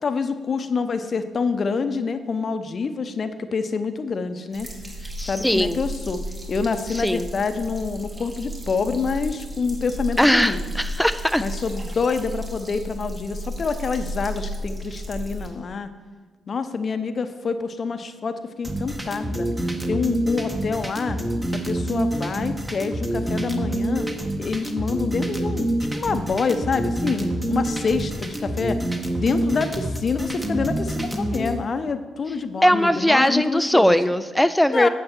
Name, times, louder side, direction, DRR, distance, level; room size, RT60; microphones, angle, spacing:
voice 1, 0.0-4.7 5.2-6.2 6.5-10.6 11.4-15.9 16.5-19.5 19.9-21.2 21.7-24.1 24.4-28.8 29.1-34.1 34.7-34.9, left 5 dB, 50° left, 10 dB, 0.7 m, -26 dB
sound 1, 4.5-15.5, equal, 30° right, 2.4 m, -33 dB
voice 2, 5.2-5.8 6.9-7.3 10.2-11.4 32.6-34.9, equal, 5° left, 11 dB, 0.3 m, -19 dB
sound 2, 18.6-31.5, right 1 dB, 15° right, 1.4 m, -27 dB
8.8 x 7.2 x 4.5 m, 1.4 s
hypercardioid pair, 50°, 0 cm